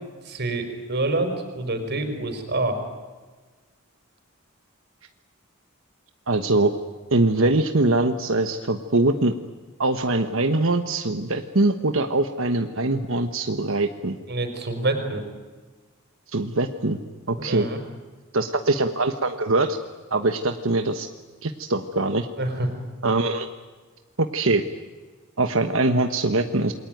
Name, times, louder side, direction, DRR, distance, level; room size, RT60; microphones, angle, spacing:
voice 1, 0.2-2.8 14.3-15.2 17.4-17.8 22.4-22.7, right 2 dB, 50° right, 7 dB, 5.1 m, -26 dB
voice 2, 6.3-6.7 7.1-9.4 9.8-14.2 16.3-17.0 17.3-17.7 18.3-19.8 20.1-21.1 21.4-22.3 23.0-23.5 24.2-24.6 25.4-26.7, right 2 dB, 70° right, 7 dB, 1.3 m, -22 dB
28.0 x 23.0 x 9.4 m, 1.4 s
head